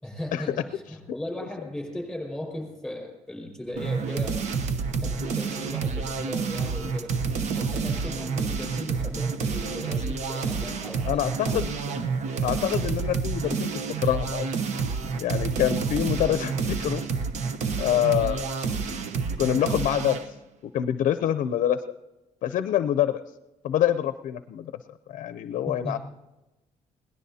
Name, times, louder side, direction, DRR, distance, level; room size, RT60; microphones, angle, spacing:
voice 1, 0.0-4.3 5.0-7.1 7.5-11.7 25.8-26.0, left 1 dB, ahead, 0 dB, 5.2 m, -37 dB
sound 1, 3.8-20.3, right 5 dB, 60° right, 0.9 m, -29 dB
voice 2, 11.1-11.7 12.4-14.5 15.2-17.0 17.8-18.6 19.4-20.2 20.6-21.8 22.4-23.2 23.6-24.7 25.1-26.0, left 11 dB, 65° left, 12 dB, 0.6 m, -26 dB
22.0 x 17.5 x 2.8 m, 1.0 s
cardioid pair, 150°, 14 cm